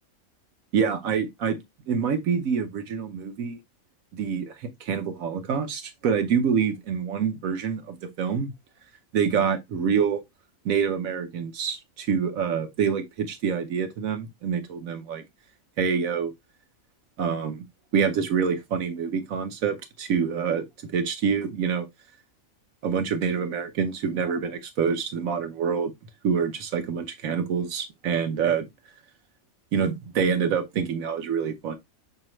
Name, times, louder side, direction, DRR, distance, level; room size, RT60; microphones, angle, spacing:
voice 1, 0.7-1.6 1.9-3.6 4.1-8.5 9.1-10.2 10.6-15.2 15.8-16.3 17.2-17.6 17.9-21.9 22.8-25.9 26.2-28.7 29.7-31.8, right 6 dB, 80° right, 1.3 m, -26 dB
5.7 x 3.0 x 3.0 m
omnidirectional pair, 1.4 m